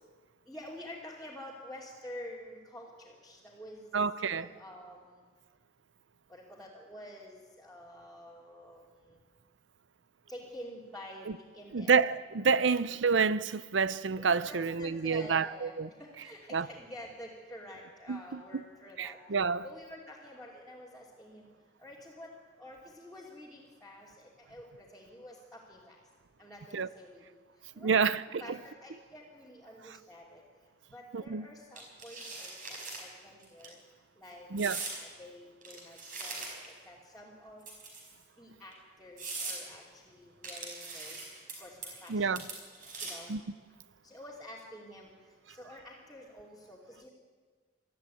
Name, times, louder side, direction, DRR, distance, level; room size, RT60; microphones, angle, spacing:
voice 1, 0.5-3.9 4.2-5.2 6.3-9.2 10.3-11.3 11.5-11.9 14.2-19.2 19.6-21.5 21.8-22.3 22.6-25.9 26.4-27.2 27.7-27.9 28.4-30.4 30.9-32.5 32.9-33.8 34.2-34.5 34.8-36.4 36.9-37.7 38.4-41.3 41.6-42.4 43.0-43.3 44.0-45.1 45.5-47.1, left 1 dB, ahead, 2.9 m, -49 dB
voice 2, 3.9-4.5 11.7-15.9 16.5-16.7 18.1-18.2 19.0-19.6 26.7-26.9 27.8-28.6 31.1-31.5 34.5-34.8 42.1-42.4 43.3-43.4, right 5 dB, 80° right, 0.6 m, -28 dB
sound 1, 31.8-33.0 33.4-33.7 34.6-35.0 35.6-36.8 37.6-38.2 38.7-38.8 39.2-39.6 40.4-41.5 41.8-42.1 42.4-43.3, right 3 dB, 45° right, 5.1 m, -41 dB
21.0 x 13.5 x 9.4 m
head